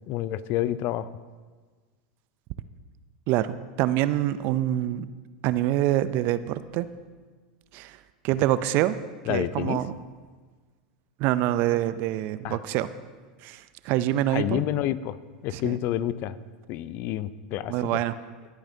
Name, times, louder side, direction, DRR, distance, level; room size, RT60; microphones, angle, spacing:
voice 1, 0.1-1.1 9.3-9.8 12.4-12.6 14.3-15.2 15.4-16.4 16.7-18.0, left 13 dB, 50° left, 16 dB, 0.4 m, -29 dB
voice 2, 3.3-5.1 5.4-6.9 7.7-8.0 8.2-9.0 9.3-9.9 11.2-12.9 13.4-14.6 15.5-15.7 17.7-18.1, right 13 dB, 50° right, 14 dB, 0.5 m, -25 dB
18.5 x 8.8 x 2.8 m, 1.4 s
hypercardioid pair, 100°, 4 cm